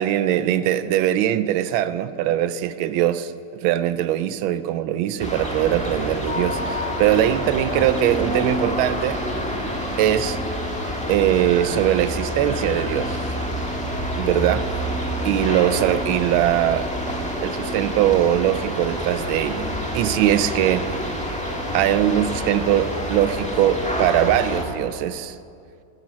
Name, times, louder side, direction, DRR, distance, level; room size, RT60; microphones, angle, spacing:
voice 1, 0.0-3.3 3.6-9.2 10.0-10.4 11.1-13.2 14.2-14.6 15.2-16.9 17.4-20.9 21.7-25.3, right 11 dB, 80° right, 13 dB, 1.4 m, -21 dB
sound 1, 5.2-24.6, equal, 5° left, 1.3 m, -27 dB
12.0 x 10.5 x 7.5 m, 2.5 s
omnidirectional pair, 2.3 m